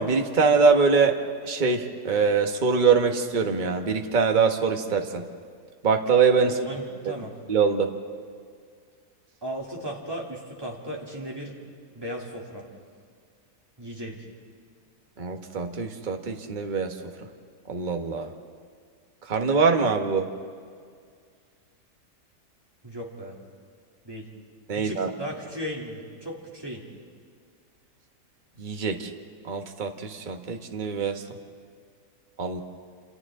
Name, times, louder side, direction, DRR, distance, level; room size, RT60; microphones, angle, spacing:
voice 1, 0.0-5.3 5.8-6.6 7.5-7.9 15.2-16.9 17.7-18.3 19.3-20.3 24.7-25.1 28.6-29.1 29.4-31.2 32.4-32.6, right 5 dB, 30° right, 4 dB, 1.2 m, -23 dB
voice 2, 6.4-7.3 9.4-11.5 11.9-12.6 13.8-14.3 22.8-23.4 24.0-24.2 24.7-26.8, equal, 15° right, -3 dB, 2.8 m, -36 dB
28.0 x 28.0 x 3.7 m, 2.1 s
omnidirectional pair, 1.8 m